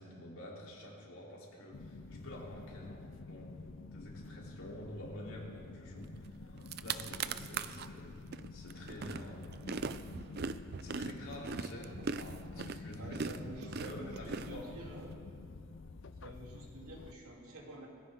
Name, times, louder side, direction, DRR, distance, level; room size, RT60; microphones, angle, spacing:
voice 1, 0.0-3.6 3.9-8.2 8.5-9.6 10.2-10.4 10.8-14.8, left 1 dB, 75° left, -4 dB, 3.8 m, -48 dB
sound 1, 1.7-17.1, left 3 dB, 60° left, 0.5 m, -49 dB
sound 2, 6.3-6.4 6.6-7.9 8.3-15.1, right 5 dB, 45° right, 0.4 m, -40 dB
voice 2, 13.0-15.1 16.1-17.9, right 1 dB, 90° right, -2 dB, 3.3 m, -49 dB
22.0 x 15.0 x 3.8 m, 2.3 s
head